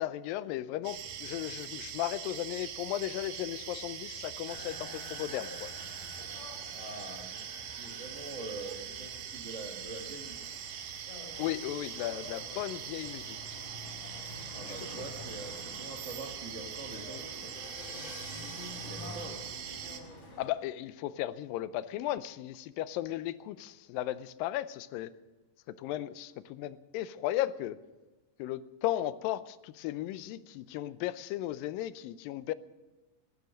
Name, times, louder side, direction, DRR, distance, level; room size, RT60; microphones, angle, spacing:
voice 1, 0.0-5.7 11.4-13.6 14.6-15.1 20.4-25.1 25.7-27.8 28.4-32.5, left 13 dB, 90° left, 15 dB, 2.4 m, -36 dB
sound 1, 0.8-20.0, right 8 dB, 80° right, 2.8 m, -42 dB
sound 2, 4.5-20.5, left 2 dB, 45° left, 6.1 m, -48 dB
voice 2, 6.7-7.4 7.8-10.4 14.5-17.5 18.6-19.4, right 2 dB, 45° right, 0 dB, 0.9 m, -44 dB
sound 3, 17.2-20.5, left 3 dB, 30° left, 1.7 m, -50 dB
17.5 x 12.5 x 6.4 m, 1.1 s
omnidirectional pair, 4.0 m